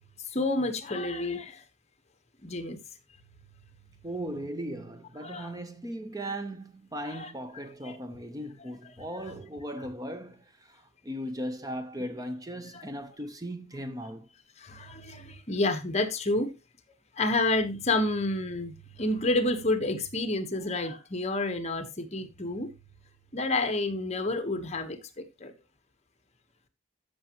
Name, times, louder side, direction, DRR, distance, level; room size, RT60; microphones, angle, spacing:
voice 1, 0.3-1.6 2.4-2.8 5.2-5.5 7.2-7.3 7.8-7.9 12.7-12.9 14.6-16.5 17.2-22.7 23.3-25.5, left 2 dB, 35° left, 1.3 m, -29 dB
voice 2, 4.0-14.3, equal, 20° right, 0.9 m, -38 dB
14.0 x 6.2 x 3.0 m
head